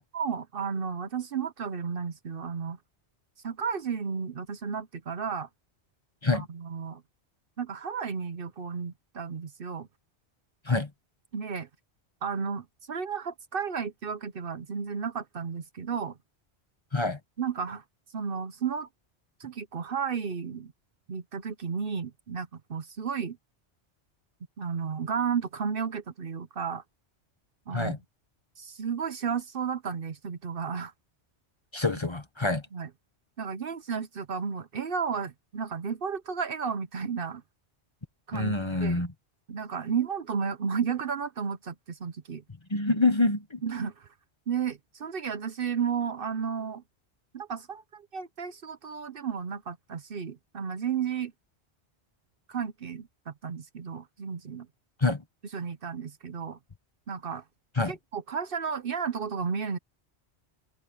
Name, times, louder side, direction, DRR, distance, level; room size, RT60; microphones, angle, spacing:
voice 1, 0.0-2.8 3.4-5.5 6.3-7.0 7.6-9.9 11.3-11.7 12.2-16.2 17.4-17.8 18.1-18.9 19.4-20.7 21.1-23.4 24.6-26.8 27.7-28.0 28.6-30.9 32.7-32.9 33.4-37.4 38.3-39.1 39.5-42.4 43.6-44.1 44.5-46.8 47.3-51.3 52.5-54.7 55.5-56.6 57.1-57.4 57.9-59.8, right 6 dB, 55° right, 1.0 m, -33 dB
voice 2, 31.7-32.6 38.3-39.1 42.7-43.6 55.0-55.2 57.8-57.9, left 3 dB, 25° left, 1.2 m, -26 dB
open air
omnidirectional pair, 1.2 m